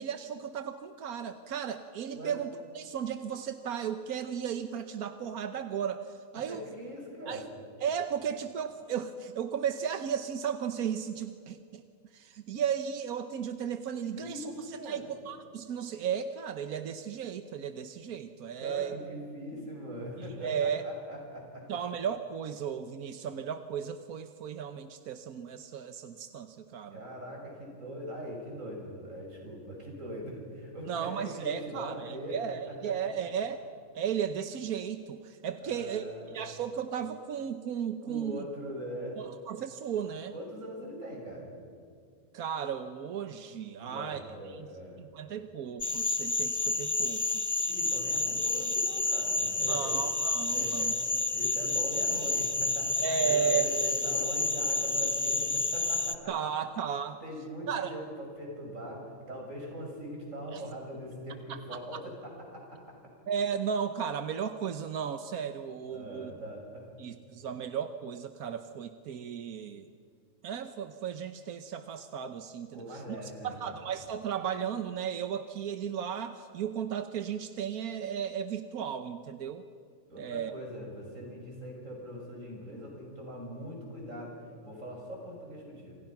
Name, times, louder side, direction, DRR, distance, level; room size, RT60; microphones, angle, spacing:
voice 1, 0.0-6.6 7.3-7.4 7.8-11.8 12.1-19.0 20.4-20.8 21.7-27.0 30.9-33.6 33.9-36.0 36.3-38.4 39.2-40.3 42.3-44.2 44.5-44.7 45.0-47.7 49.6-50.9 53.0-53.7 56.3-57.2 57.7-58.0 60.5-60.6 61.5-61.8 63.3-66.3 67.0-69.9 70.4-72.8 73.4-79.6 80.2-80.5, right 8 dB, 90° right, 8 dB, 1.4 m, -35 dB
voice 2, 6.5-7.5 14.1-15.1 18.6-21.8 26.9-32.9 35.6-36.4 38.0-39.2 40.3-41.5 43.8-45.0 47.7-50.0 50.5-51.0 51.3-56.4 57.2-63.1 65.9-66.9 72.7-73.8 80.1-84.4 84.6-85.9, equal, 60° right, -1 dB, 7.0 m, -41 dB
sound 1, 45.8-56.2, left 3 dB, 20° left, 0.4 m, -29 dB
28.5 x 27.5 x 5.9 m, 2.2 s
omnidirectional pair, 1.5 m